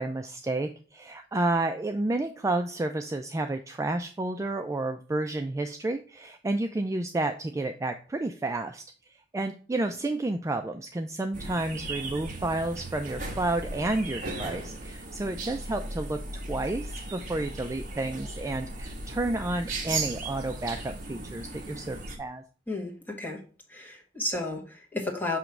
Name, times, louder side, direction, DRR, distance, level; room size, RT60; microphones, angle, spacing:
voice 1, 0.0-8.8 9.3-22.4, right 2 dB, 15° right, 6 dB, 0.3 m, -31 dB
sound 1, 11.3-22.2, right 2 dB, 45° right, 1.2 m, -37 dB
voice 2, 22.7-23.4 23.7-25.4, left 2 dB, 10° left, -1 dB, 1.5 m, -33 dB
6.4 x 3.0 x 5.8 m, 0.40 s
head